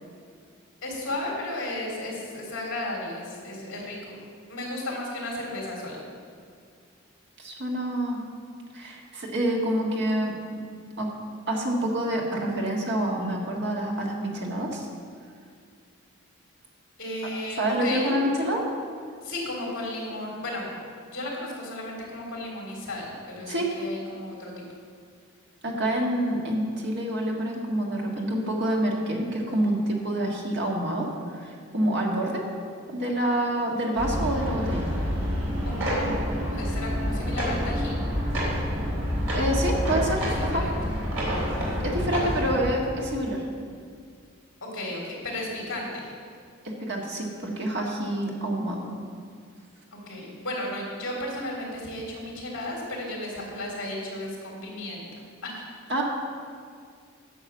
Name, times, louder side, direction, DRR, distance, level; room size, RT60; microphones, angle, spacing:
voice 1, 0.8-4.2 4.5-6.0 17.0-18.1 19.2-20.8 21.1-24.6 35.6-38.0 39.7-40.8 44.6-46.1 49.9-55.1 55.4-55.7, left 1 dB, 60° left, -3 dB, 3.4 m, -34 dB
voice 2, 7.4-8.2 8.7-10.6 11.0-11.1 11.5-14.9 17.6-18.6 23.5-23.7 25.6-32.4 32.9-34.9 39.3-40.6 41.8-43.4 46.6-48.9 55.9-56.0, right 1 dB, 50° right, -1 dB, 1.7 m, -27 dB
sound 1, 34.0-42.7, equal, 70° right, 3.5 m, -28 dB
10.5 x 7.0 x 7.2 m, 2.2 s
head